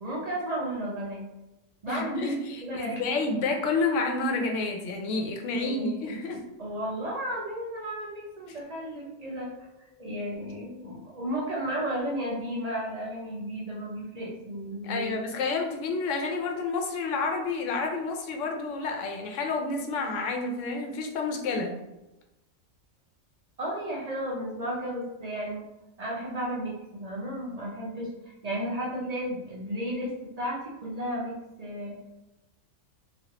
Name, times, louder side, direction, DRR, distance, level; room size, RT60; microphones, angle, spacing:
voice 1, 0.0-1.2 1.8-2.3 2.6-3.0 5.5-6.1 6.6-15.2 23.6-25.6 26.0-28.1 28.4-32.0, right 1 dB, 45° right, -4 dB, 0.5 m, -33 dB
voice 2, 1.9-6.4 10.0-10.2 14.8-21.7, left 3 dB, 75° left, 3 dB, 0.9 m, -29 dB
3.1 x 2.4 x 2.8 m, 0.97 s
omnidirectional pair, 1.4 m